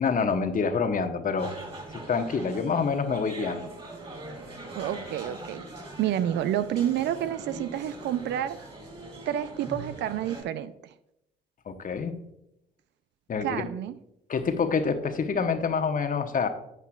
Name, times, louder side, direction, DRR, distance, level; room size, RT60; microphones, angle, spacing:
voice 1, 0.0-1.5 1.9-3.7 11.7-12.1 13.3-13.7 14.3-16.5, left 5 dB, 40° left, 8 dB, 1.1 m, -27 dB
sound 1, 1.4-10.4, right 2 dB, 25° right, 3.3 m, -42 dB
voice 2, 4.7-5.6 6.0-8.6 9.3-10.7 13.4-14.0, right 11 dB, 60° right, 13 dB, 0.5 m, -29 dB
11.0 x 8.3 x 2.4 m, 0.83 s
hypercardioid pair, 45°, 21 cm